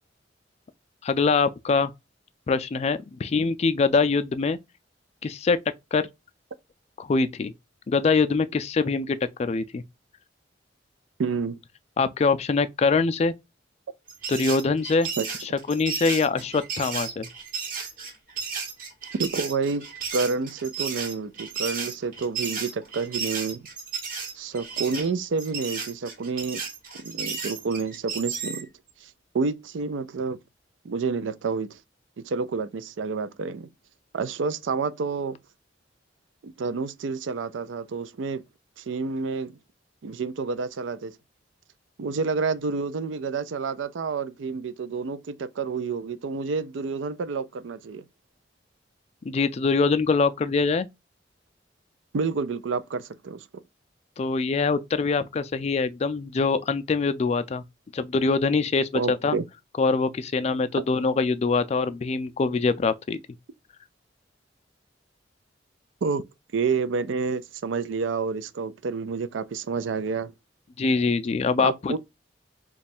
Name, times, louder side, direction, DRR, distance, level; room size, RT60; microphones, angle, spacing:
voice 1, 1.0-1.9 2.5-4.6 5.2-5.6 5.9-6.1 7.0-7.5 7.9-9.8 12.0-13.3 14.3-15.1 15.4-17.3 49.2-50.9 54.2-57.6 57.9-59.4 59.8-63.2 70.8-72.0, left 4 dB, 35° left, 0.3 m, -24 dB
voice 2, 11.2-11.6 15.2-15.3 19.2-23.6 24.4-26.6 27.0-28.7 29.0-29.1 29.3-30.4 30.8-31.8 32.2-33.7 34.1-35.4 36.4-38.4 38.8-39.5 40.0-41.2 42.0-48.0 52.1-53.4 58.9-59.4 66.0-66.3 66.5-70.3 71.6-72.0, right 4 dB, 90° right, 0.4 m, -29 dB
sound 1, 14.1-28.7, right 5 dB, 50° right, 1.0 m, -33 dB
3.1 x 2.3 x 4.2 m
head